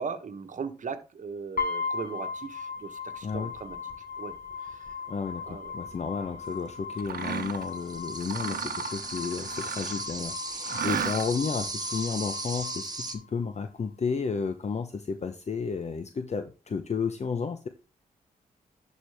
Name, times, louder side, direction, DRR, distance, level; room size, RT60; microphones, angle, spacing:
voice 1, 0.0-3.8 4.2-4.3 4.6-4.9 5.4-5.7, right 5 dB, 55° right, 1.2 m, -38 dB
sound 1, 1.6-13.6, left 5 dB, 65° left, 3.0 m, -38 dB
voice 2, 3.2-3.5 5.1-17.7, left 5 dB, 45° left, 0.8 m, -32 dB
Mechanisms, 7.0-7.7 8.2-10.1 10.6-11.5, right 8 dB, 80° right, 0.9 m, -34 dB
sound 2, 7.2-13.1, right 3 dB, 25° right, 1.7 m, -37 dB
11.0 x 4.6 x 3.4 m
cardioid pair, 65°, 15 cm